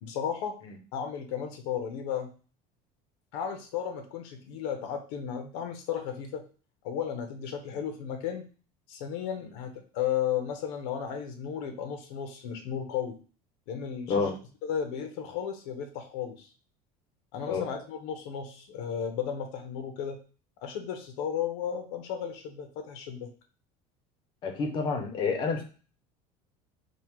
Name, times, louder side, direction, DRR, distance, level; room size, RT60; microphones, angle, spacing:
voice 1, 0.0-0.6 0.9-2.3 3.3-6.4 6.8-8.5 8.9-13.2 13.7-14.3 14.6-16.5 17.3-20.2 20.6-23.3, left 8 dB, 70° left, 6 dB, 0.8 m, -34 dB
voice 2, 24.4-25.6, left 4 dB, 30° left, 3 dB, 0.9 m, -29 dB
3.6 x 2.4 x 4.5 m, 0.36 s
cardioid pair, 175°, 15 cm